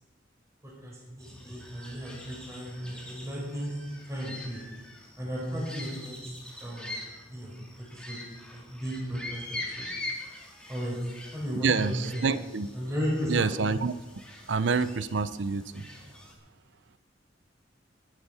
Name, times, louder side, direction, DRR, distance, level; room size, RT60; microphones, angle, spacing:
voice 1, 0.6-3.7 4.1-4.6 5.2-6.3 6.6-7.0 7.3-7.5 7.9-8.2 8.5-9.8 10.7-10.9 11.3-12.3 12.7-13.5, equal, 15° right, -4 dB, 4.4 m, -35 dB
sound 1, 1.2-16.3, left 2 dB, 5° left, 2.3 m, -43 dB
voice 2, 11.6-12.7 13.3-13.9 14.5-15.8, right 4 dB, 75° right, 15 dB, 0.6 m, -27 dB
21.0 x 8.1 x 5.6 m, 1.2 s
head